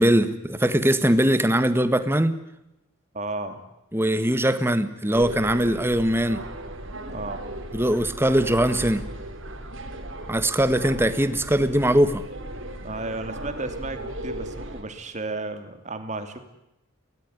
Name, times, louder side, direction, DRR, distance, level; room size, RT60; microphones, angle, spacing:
voice 1, 0.0-2.4 3.9-6.4 7.7-9.0 10.3-12.2, right 1 dB, 10° right, 11 dB, 1.5 m, -21 dB
voice 2, 3.1-3.6 7.1-7.4 12.8-16.4, right 2 dB, 35° right, 8 dB, 2.9 m, -33 dB
sound 1, 5.1-14.8, right 1 dB, 60° right, 4.1 m, -36 dB
22.5 x 19.0 x 9.7 m, 0.88 s
head